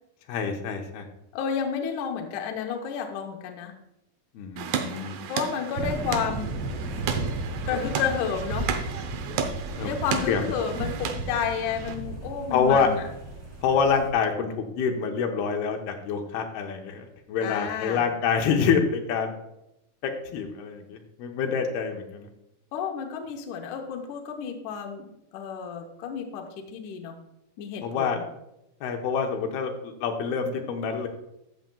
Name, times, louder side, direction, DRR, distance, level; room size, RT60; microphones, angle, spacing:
voice 1, 0.3-1.1 4.3-5.2 9.8-9.9 10.3-10.5 12.5-12.9 13.6-14.5 14.8-19.3 20.0-22.3 27.8-28.2 28.8-31.1, left 6 dB, 85° left, 3 dB, 2.9 m, -26 dB
voice 2, 1.3-3.7 5.3-6.6 7.7-8.7 9.8-13.1 17.4-18.1 22.7-27.2 27.6-28.2, left 7 dB, 70° left, 3 dB, 2.1 m, -31 dB
sound 1, 4.6-11.9, right 7 dB, 80° right, 1.7 m, -34 dB
sound 2, 5.7-14.1, right 2 dB, 40° right, 1.7 m, -34 dB
13.5 x 7.8 x 2.3 m, 0.84 s
omnidirectional pair, 4.3 m